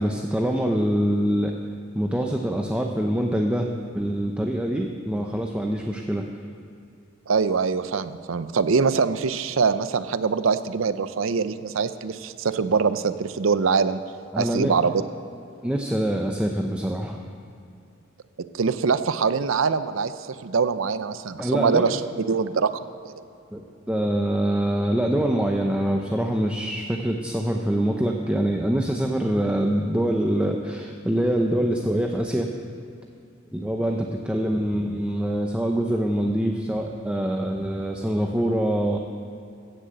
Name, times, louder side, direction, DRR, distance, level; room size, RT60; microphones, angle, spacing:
voice 1, 0.0-1.5 1.9-3.7 3.9-6.2 14.3-14.7 15.6-17.2 21.4-21.9 23.5-32.5 33.5-39.0, right 1 dB, 5° right, 1 dB, 0.6 m, -24 dB
voice 2, 7.3-14.0 14.4-15.0 18.5-20.1 20.4-22.0 22.3-23.2, right 5 dB, 90° right, 12 dB, 0.6 m, -23 dB
15.5 x 6.7 x 7.8 m, 2.6 s
head